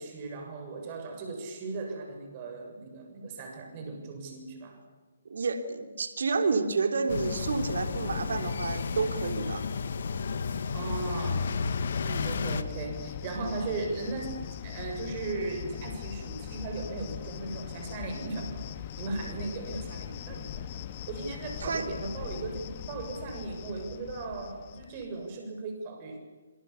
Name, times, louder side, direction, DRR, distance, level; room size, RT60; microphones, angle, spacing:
voice 1, 0.0-4.8 10.7-11.6 12.2-18.6 19.0-20.7 21.1-26.2, right 3 dB, 35° right, 4 dB, 6.8 m, -37 dB
voice 2, 5.3-9.7 12.0-12.3 21.6-21.9, right 4 dB, 70° right, 7 dB, 3.5 m, -30 dB
sound 1, 7.1-12.6, left 5 dB, 65° left, 2.0 m, -32 dB
Cricket, 9.5-25.2, left 10 dB, 40° left, 1.9 m, -41 dB
28.5 x 27.0 x 7.2 m, 1.3 s
hypercardioid pair, 140°, 0 cm